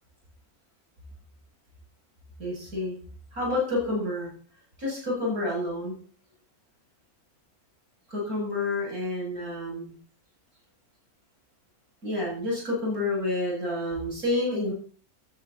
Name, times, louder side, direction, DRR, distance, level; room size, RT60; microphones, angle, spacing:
voice 1, 2.4-3.0 3.3-4.3 4.8-6.0 8.1-10.0 12.0-14.7, left 2 dB, 80° right, -3 dB, 8.3 m, -29 dB
19.0 x 13.5 x 4.3 m, 0.42 s
omnidirectional pair, 1.5 m